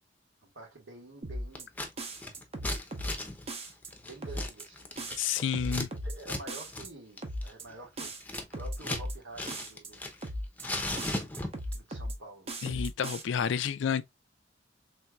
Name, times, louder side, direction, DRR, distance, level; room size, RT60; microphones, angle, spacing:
voice 1, 0.4-1.7 4.0-4.9 6.0-8.1 8.5-10.0 11.7-12.5, right 2 dB, 80° right, 1.7 m, -48 dB
sound 1, 1.2-1.6 2.0-3.2 3.5-3.9 4.2-4.6 5.0-6.2 6.5-6.9 7.2-7.6 8.0-9.2 9.5-9.9 10.2-10.6 11.0-12.2 12.5-13.2, equal, 35° right, 0.8 m, -37 dB
Scissors, 1.5-1.9 2.2-5.9 6.2-6.4 6.7-6.9 7.2-9.1 9.3-10.3 10.6-11.7, left 2 dB, 10° left, 0.7 m, -37 dB
voice 2, 5.2-5.9 12.6-14.0, left 7 dB, 70° left, 0.4 m, -30 dB
4.4 x 3.2 x 2.3 m
head